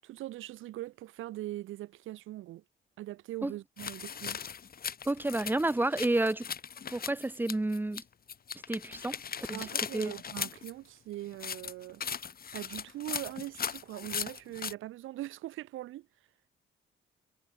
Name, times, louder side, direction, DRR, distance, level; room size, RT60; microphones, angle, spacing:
voice 1, 0.0-2.6 3.0-4.4 9.5-12.0 12.5-16.1, right 15 dB, 90° right, 6.6 m, -41 dB
sound 1, 3.8-8.0 8.3-10.7 11.3-14.7, left 7 dB, 50° left, 4.4 m, -38 dB
voice 2, 5.1-6.5 6.9-8.0 8.7-9.2 9.5-9.7 9.9-10.1, right 2 dB, 10° right, 0.7 m, -30 dB
cardioid pair, 90°, 20 cm